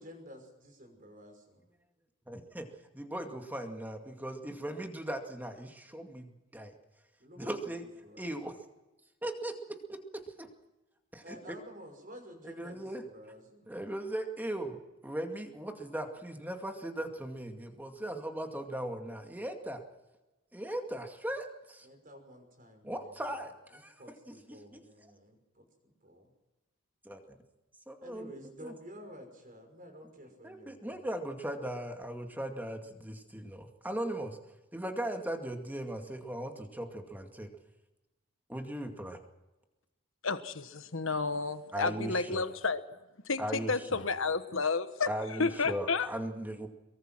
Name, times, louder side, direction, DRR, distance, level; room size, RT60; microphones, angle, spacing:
voice 1, 0.0-1.7 7.2-8.5 11.2-13.7 21.8-23.2 23.7-26.3 28.0-31.0, equal, 40° right, 5 dB, 5.8 m, -51 dB
voice 2, 2.3-2.7 2.9-6.7 7.4-7.8 8.2-8.5 9.2-10.5 11.1-11.5 12.4-13.0 13.7-19.8 20.5-21.9 22.8-23.9 24.3-24.8 27.0-27.4 27.9-28.3 28.6-28.7 30.4-34.4 34.7-37.5 38.5-39.2 41.7-42.5 43.4-44.0 45.1-46.7, right 1 dB, 10° right, 4 dB, 2.2 m, -38 dB
voice 3, 40.2-42.8 43.2-46.1, left 4 dB, 65° left, 11 dB, 1.3 m, -31 dB
23.0 x 23.0 x 6.2 m, 1.0 s
head